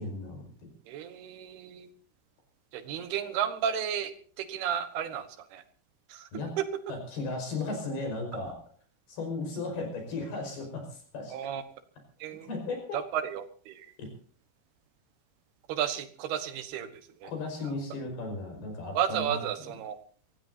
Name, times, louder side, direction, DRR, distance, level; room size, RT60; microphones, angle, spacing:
voice 1, 0.0-0.7 6.3-6.5 6.9-8.6 9.1-11.4 12.5-13.0 14.0-14.1 17.2-19.4, left 3 dB, 75° left, 3 dB, 7.1 m, -35 dB
voice 2, 0.9-1.9 2.7-5.6 6.1-6.3 6.6-6.7 11.3-11.6 12.2-12.5 12.9-13.9 15.7-16.9 17.2-17.3 17.6-17.7 19.0-20.0, right 9 dB, 85° right, 9 dB, 3.4 m, -33 dB
24.5 x 16.5 x 2.8 m, 0.42 s
omnidirectional pair, 4.5 m